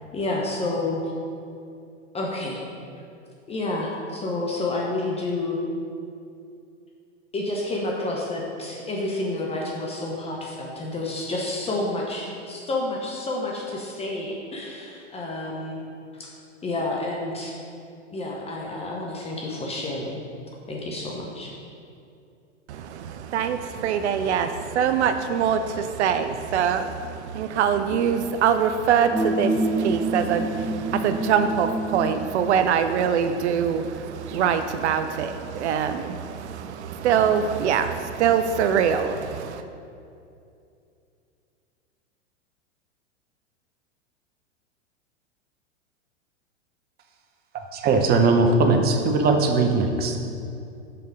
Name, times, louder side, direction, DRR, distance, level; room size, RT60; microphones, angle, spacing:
voice 1, 0.1-1.0 2.1-2.6 3.5-5.6 7.3-15.8 16.2-16.3 16.6-17.5 18.1-20.2 20.7-21.5, left 2 dB, 15° left, -2 dB, 0.7 m, -29 dB
voice 2, 22.7-39.6, right 7 dB, 65° right, 9 dB, 0.5 m, -24 dB
sound 1, 29.1-32.3, right 2 dB, 5° right, 1.0 m, -27 dB
voice 3, 47.7-50.2, right 3 dB, 25° right, 4 dB, 0.7 m, -20 dB
5.8 x 5.4 x 4.9 m, 2.6 s
hypercardioid pair, 105°, 37 cm